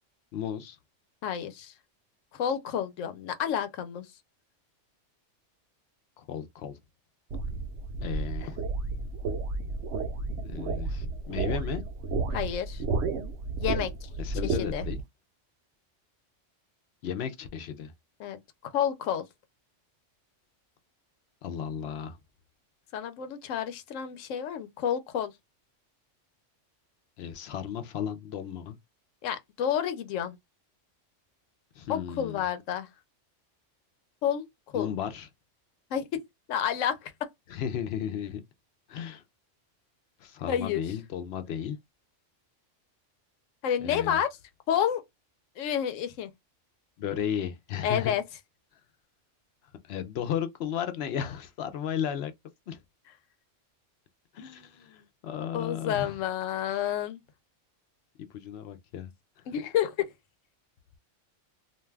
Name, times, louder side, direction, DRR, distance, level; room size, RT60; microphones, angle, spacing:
voice 1, 0.3-0.8 6.2-6.8 8.0-8.6 10.4-11.8 14.2-15.0 17.0-17.9 21.4-22.2 27.2-28.8 31.8-32.4 34.7-35.3 37.5-38.4 38.9-39.2 40.2-41.8 43.8-44.2 47.0-48.1 49.8-52.3 52.7-52.8 54.3-56.2 58.3-59.1, left 9 dB, 65° left, 0.7 m, -34 dB
voice 2, 1.2-1.7 2.3-4.1 12.3-12.8 13.6-14.1 14.4-14.8 18.2-19.3 22.9-25.3 29.2-30.4 31.9-32.9 34.2-35.0 35.9-36.1 36.5-37.1 40.5-40.8 43.6-44.3 44.7-45.0 45.6-46.3 47.8-48.2 55.5-57.2 59.5-60.1, left 9 dB, 85° left, 1.0 m, -30 dB
sound 1, 7.3-15.0, right 3 dB, 65° right, 0.8 m, -32 dB
2.5 x 2.3 x 3.2 m
omnidirectional pair, 1.3 m